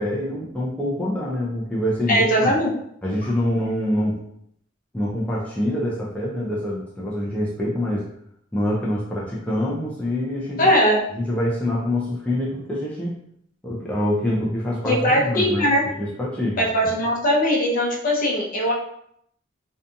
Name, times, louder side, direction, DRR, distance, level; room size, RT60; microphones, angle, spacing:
voice 1, 0.0-2.5 3.0-4.2 4.9-8.1 8.5-10.6 11.1-13.1 13.6-15.7 16.0-16.7, left 1 dB, 5° left, -6 dB, 0.4 m, -25 dB
voice 2, 2.1-2.7 10.6-11.0 14.8-15.8 16.6-18.7, equal, 45° left, -2 dB, 0.6 m, -20 dB
2.6 x 2.3 x 2.5 m, 0.71 s
head